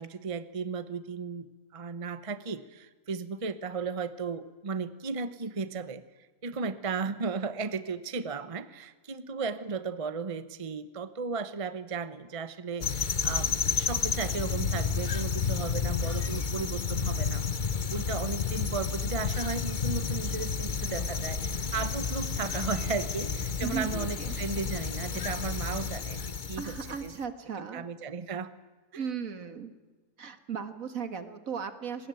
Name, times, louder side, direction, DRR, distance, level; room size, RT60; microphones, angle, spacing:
voice 1, 0.0-1.5 1.7-6.0 6.4-26.8 27.0-27.1 27.6-28.5 28.9-29.0, right 4 dB, 25° right, 14 dB, 0.9 m, -35 dB
sound 1, 12.8-27.1, left 5 dB, 40° left, 0.9 m, -31 dB
voice 2, 23.6-24.4 26.6-27.8 29.0-29.7 30.2-32.1, right 6 dB, 65° right, 11 dB, 2.1 m, -36 dB
23.5 x 20.0 x 9.2 m, 1.3 s
omnidirectional pair, 1.6 m